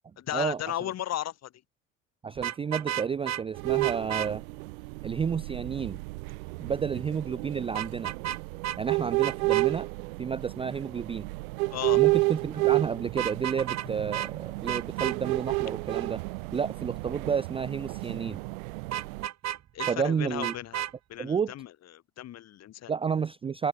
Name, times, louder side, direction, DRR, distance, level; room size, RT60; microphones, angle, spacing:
voice 1, 0.2-1.5 11.7-12.0 19.7-20.8 21.1-21.7 22.2-22.9, left 12 dB, 35° left, 1.2 m, -35 dB
voice 2, 2.2-4.4 5.0-6.0 6.6-8.1 8.8-9.9 10.2-11.3 11.9-16.2 16.5-18.4 19.9-20.5 21.2-21.5 22.9-23.7, right 6 dB, 15° right, 0.4 m, -31 dB
Vehicle horn car horn honking, 2.4-3.4 3.8-4.3 7.7-8.4 8.6-8.8 9.2-9.7 13.1-13.9 14.1-14.3 14.7-15.2 18.9-20.0 20.4-20.9, right 11 dB, 40° right, 2.0 m, -32 dB
sound 1, 3.5-19.3, right 26 dB, 70° right, 0.7 m, -31 dB
open air
hypercardioid pair, 85°, 43 cm